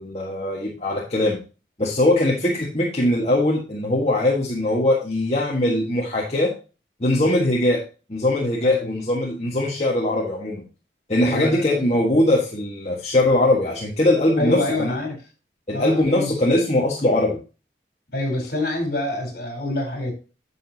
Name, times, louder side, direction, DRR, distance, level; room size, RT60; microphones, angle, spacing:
voice 1, 0.0-1.4 1.8-6.5 7.0-7.8 8.1-10.6 11.1-14.9 15.7-17.4, left 1 dB, 35° left, -3 dB, 1.6 m, -21 dB
voice 2, 8.6-9.0 11.3-11.9 14.4-15.2 15.7-16.4 18.1-20.1, left 2 dB, 55° left, 2 dB, 4.0 m, -26 dB
10.5 x 7.0 x 2.9 m, 0.33 s
head